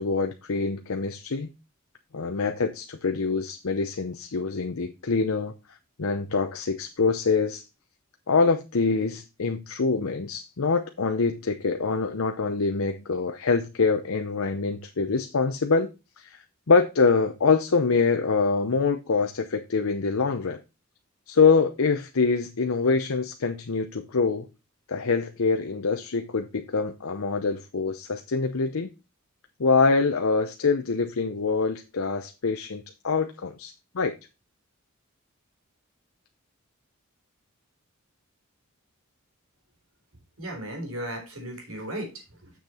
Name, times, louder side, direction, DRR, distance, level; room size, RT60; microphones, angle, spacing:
voice 1, 0.0-1.5 2.1-5.5 6.0-7.6 8.3-15.9 16.2-20.6 21.3-24.5 24.9-28.9 29.6-34.2, left 4 dB, 75° left, 0.7 m, -25 dB
voice 2, 40.4-42.5, right 1 dB, 80° right, 3.6 m, -36 dB
7.3 x 6.2 x 4.2 m
head